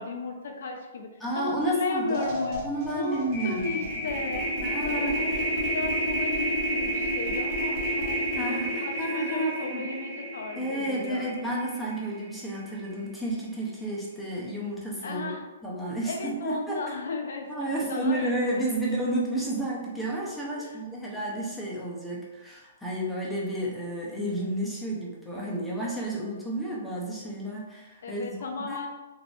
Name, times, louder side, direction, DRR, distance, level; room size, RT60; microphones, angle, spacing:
voice 1, 0.0-2.6 2.9-11.3 15.0-15.5 16.0-18.6 20.6-20.8 28.0-28.9, left 3 dB, 75° left, 3 dB, 0.6 m, -35 dB
voice 2, 1.2-2.3 2.6-3.8 4.6-5.4 8.4-9.9 10.6-15.3 15.6-16.8 17.5-28.4 28.7-28.9, right 1 dB, ahead, -6 dB, 0.6 m, -31 dB
sound 1, 1.6-1.7 2.0-12.3, right 1 dB, 40° right, 1.0 m, -30 dB
3.9 x 2.5 x 2.4 m, 1.1 s
hypercardioid pair, 160°, 0 cm